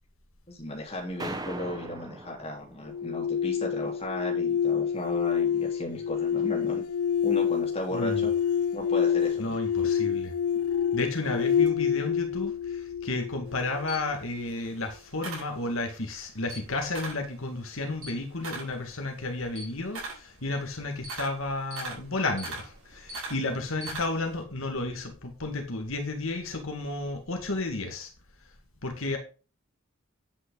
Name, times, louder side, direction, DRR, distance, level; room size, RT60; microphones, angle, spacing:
voice 1, 0.5-6.8 7.2-8.3 8.7-9.6, left 1 dB, 25° left, 3.5 m, -36 dB
sound 1, 1.2-3.2, right 2 dB, 15° right, 1.1 m, -39 dB
sound 2, 2.9-13.9, left 8 dB, 85° left, 0.4 m, -27 dB
voice 2, 7.9-8.3 9.4-10.3 10.9-28.1 28.4-28.5 28.8-29.2, left 2 dB, 70° left, 1.9 m, -32 dB
Camera, 13.5-16.0 16.4-17.3 17.7-24.4, right 2 dB, 70° right, 6.0 m, -40 dB
9.6 x 8.4 x 3.8 m
head